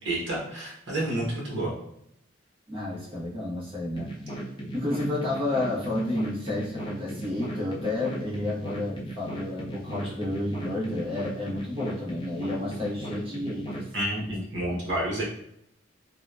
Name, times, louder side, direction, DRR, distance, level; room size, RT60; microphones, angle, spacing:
voice 1, 0.0-1.7 13.9-15.2, right 1 dB, 70° right, -4 dB, 0.8 m, -29 dB
voice 2, 2.7-4.1 4.7-13.9 14.2-14.3 14.8-15.0, left 2 dB, 30° right, -6 dB, 0.9 m, -31 dB
sound 1, 4.0-13.9, right 1 dB, 25° left, 0.5 m, -37 dB
2.8 x 2.1 x 2.2 m, 0.76 s
head